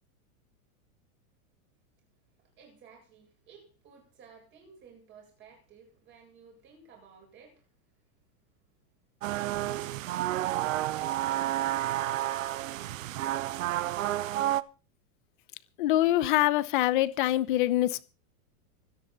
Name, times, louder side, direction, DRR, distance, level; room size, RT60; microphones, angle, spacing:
voice 1, 2.6-7.7, right 5 dB, 25° right, 7.9 m, -55 dB
sound 1, 9.2-14.6, right 14 dB, 60° right, 0.9 m, -30 dB
voice 2, 15.8-18.0, left 14 dB, 35° left, 0.8 m, -24 dB
25.0 x 10.0 x 4.1 m
supercardioid pair, 180°, 44 cm